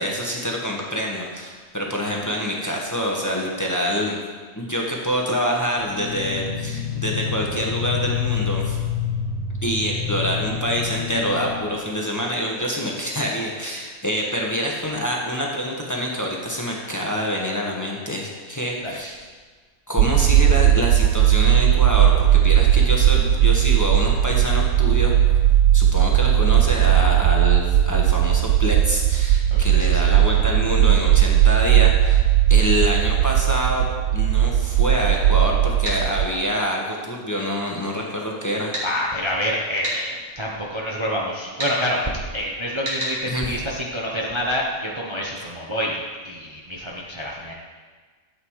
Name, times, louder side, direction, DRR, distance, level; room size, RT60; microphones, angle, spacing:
voice 1, 0.0-4.2 4.5-8.8 9.6-19.2 19.9-25.1 25.7-32.2 32.5-33.9 34.1-38.7 43.3-43.5, equal, 15° left, -1 dB, 1.4 m, -26 dB
sound 1, 5.8-11.7, left 7 dB, 65° left, 1.7 m, -28 dB
sound 2, 20.0-36.3, right 11 dB, 80° right, 1.0 m, -17 dB
voice 2, 29.5-30.1 38.8-46.0 46.2-47.5, equal, 20° right, -3 dB, 1.1 m, -27 dB
sound 3, 35.8-36.0 38.7-38.9 39.8-40.0 41.6-41.8 42.8-43.2, equal, 55° right, 3.3 m, -27 dB
12.5 x 8.1 x 4.8 m, 1.5 s
omnidirectional pair, 1.5 m